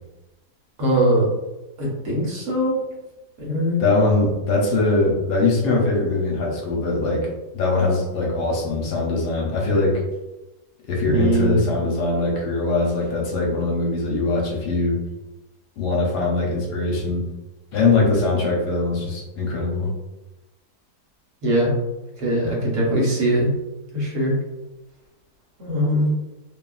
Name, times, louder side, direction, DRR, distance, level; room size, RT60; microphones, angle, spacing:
voice 1, 0.8-1.2 1.8-2.8 3.4-3.8 11.1-11.6 21.4-21.7 22.2-23.5 23.9-24.3 25.6-26.1, right 1 dB, 55° right, -4 dB, 1.0 m, -21 dB
voice 2, 3.8-7.3 7.5-10.0 10.9-15.0 15.8-17.2 17.7-19.9, left 3 dB, 75° left, -2 dB, 1.2 m, -22 dB
2.8 x 2.3 x 2.3 m, 1.0 s
omnidirectional pair, 1.8 m